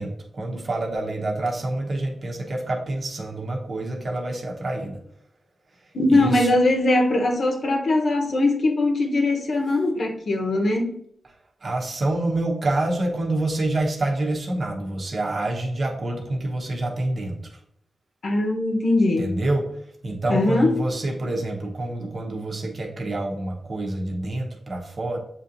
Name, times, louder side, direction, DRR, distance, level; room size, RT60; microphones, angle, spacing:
voice 1, 0.0-5.0 6.1-6.5 11.6-17.4 19.2-19.7 20.0-25.2, right 2 dB, 45° right, -1 dB, 0.9 m, -27 dB
voice 2, 5.9-11.0 18.2-19.4 20.3-20.8, left 2 dB, 60° left, 3 dB, 0.9 m, -21 dB
7.2 x 2.7 x 2.6 m, 0.72 s
wide cardioid pair, 95°, 0 cm